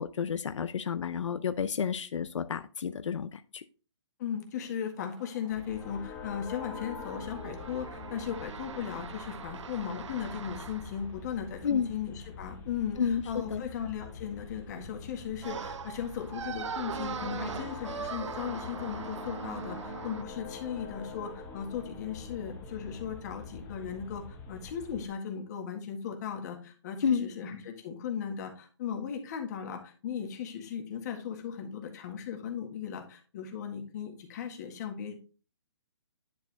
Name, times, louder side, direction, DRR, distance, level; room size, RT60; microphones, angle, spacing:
voice 1, 0.0-3.6 11.6-11.9 13.0-13.6 27.0-27.3, left 7 dB, 85° left, 11 dB, 0.5 m, -30 dB
voice 2, 4.2-35.1, left 8 dB, 35° left, 3 dB, 1.7 m, -37 dB
sound 1, 5.0-11.1 15.4-20.2, right 7 dB, 80° right, 0.6 m, -41 dB
sound 2, 5.5-25.1, left 5 dB, 10° left, 1.1 m, -45 dB
10.5 x 4.6 x 3.4 m, 0.37 s
hypercardioid pair, 160°, 15 cm